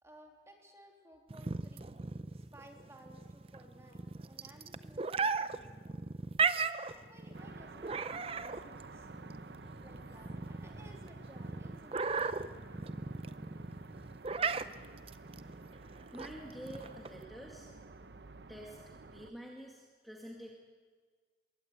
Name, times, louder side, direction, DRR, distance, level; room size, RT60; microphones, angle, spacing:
voice 1, 0.0-5.9 6.7-9.1 9.8-12.8, equal, 15° right, 1 dB, 3.0 m, -58 dB
sound 1, 1.3-17.2, right 5 dB, 35° right, 0.6 m, -37 dB
sound 2, 7.3-19.3, right 3 dB, 75° right, 0.9 m, -52 dB
voice 2, 16.1-17.7 18.5-18.8 19.1-20.5, equal, ahead, -2 dB, 2.2 m, -48 dB
22.5 x 18.0 x 8.2 m, 1.5 s
head